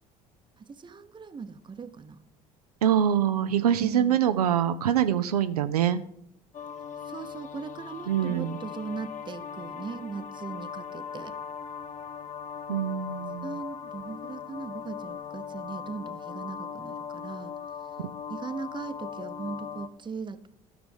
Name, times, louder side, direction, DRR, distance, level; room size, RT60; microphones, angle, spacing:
voice 1, 0.6-2.2 3.8-4.2 7.1-11.3 13.4-17.5 18.3-20.5, right 5 dB, 25° right, 11 dB, 0.9 m, -39 dB
voice 2, 2.8-6.0 8.1-8.5 12.7-13.5, right 9 dB, 80° right, 9 dB, 0.5 m, -24 dB
sound 1, 6.5-19.9, left 7 dB, 40° left, 0.7 m, -39 dB
13.0 x 6.0 x 5.4 m, 0.75 s
figure-of-eight pair, 65°, 19 cm